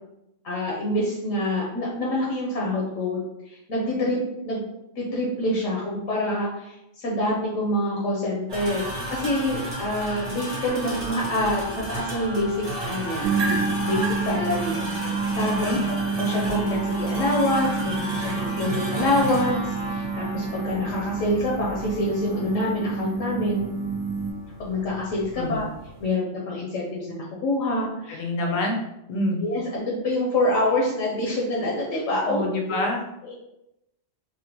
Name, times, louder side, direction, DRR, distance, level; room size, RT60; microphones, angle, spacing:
voice 1, 0.4-3.2 3.5-4.2 4.4-4.6 5.0-11.6 11.9-13.3 13.8-14.8 15.4-15.7 16.2-23.6 24.6-25.6 26.0-28.2 29.4-32.4 32.7-32.8 33.2-33.3, left 1 dB, 80° left, -3 dB, 1.1 m, -26 dB
sound 1, 8.5-26.1, right 1 dB, 40° right, 1.0 m, -33 dB
sound 2, 13.2-24.3, right 4 dB, 75° right, 0.9 m, -29 dB
voice 2, 28.1-28.8 29.1-29.4 32.2-33.0, left 2 dB, 50° left, 1 dB, 0.6 m, -26 dB
3.6 x 2.1 x 2.9 m, 0.87 s
omnidirectional pair, 1.3 m